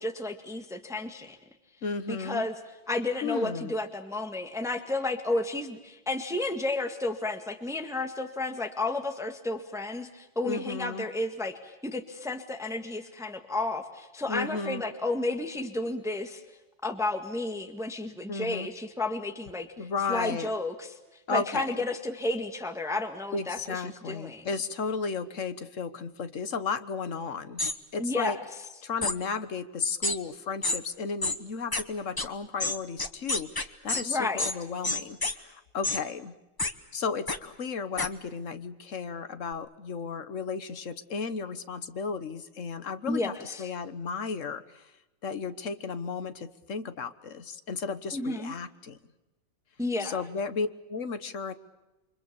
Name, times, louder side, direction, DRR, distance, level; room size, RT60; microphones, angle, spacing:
voice 1, 0.0-1.4 2.1-2.5 2.9-16.4 16.8-19.7 20.1-20.9 21.3-24.5 28.0-28.4 34.0-34.5 43.1-43.6 48.1-48.5 49.8-50.2, left 2 dB, ahead, 6 dB, 1.6 m, -32 dB
voice 2, 1.8-2.4 3.2-3.7 10.5-11.0 14.3-14.8 18.3-18.7 19.8-20.5 21.3-21.7 23.3-27.6 27.9-28.4 28.8-36.3 36.9-44.9 45.2-49.0 50.0-51.5, left 5 dB, 45° left, 11 dB, 1.4 m, -34 dB
sound 1, 27.6-27.7 29.0-29.2 30.0-30.2 30.6-30.8 31.2-31.4 31.7-31.8 32.2-32.3 32.6-34.0 34.4-34.5 34.8-35.3 35.8-36.0 36.6-36.7 37.3-37.4 38.0-38.1, left 2 dB, 15° left, 0.7 m, -28 dB
29.0 x 24.5 x 7.0 m, 1.0 s
omnidirectional pair, 2.1 m